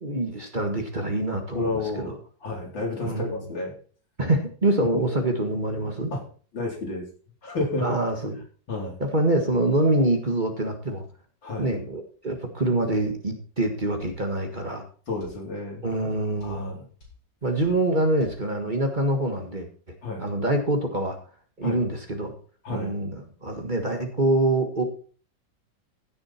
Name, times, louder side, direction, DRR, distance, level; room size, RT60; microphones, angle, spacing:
voice 1, 0.0-2.2 3.0-3.4 4.2-6.1 7.8-8.4 9.0-11.0 11.6-14.8 15.8-16.8 17.4-19.7 20.2-21.2 21.6-22.3 22.7-24.8, right 2 dB, 25° right, 4 dB, 1.6 m, -25 dB
voice 2, 1.5-3.7 4.9-5.0 6.1-6.2 6.5-7.0 7.4-7.9 8.7-9.0 11.4-11.7 15.1-15.8 16.4-16.9 20.0-20.2 21.6-21.8 22.6-22.9, left 2 dB, 90° left, -1 dB, 4.5 m, -31 dB
sound 1, 14.0-14.2 15.2-15.4 16.4-16.6 17.0-17.2 17.6-17.8 18.2-18.4, left 4 dB, 40° left, 4.4 m, -49 dB
16.0 x 6.4 x 4.3 m, 0.42 s
omnidirectional pair, 2.0 m